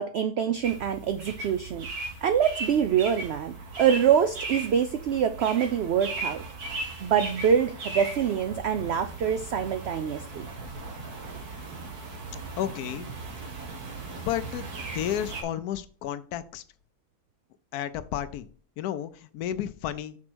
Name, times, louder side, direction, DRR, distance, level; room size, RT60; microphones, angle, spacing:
voice 1, 0.0-1.9 2.2-6.4 7.0-10.5, right 8 dB, 65° right, 10 dB, 0.6 m, -25 dB
sound 1, 0.6-15.4, right 3 dB, 90° right, 2.0 m, -38 dB
voice 2, 12.6-13.1 14.2-16.6 17.7-18.5 18.8-20.2, left 11 dB, 90° left, 13 dB, 1.1 m, -32 dB
6.0 x 4.4 x 6.1 m, 0.43 s
omnidirectional pair, 1.6 m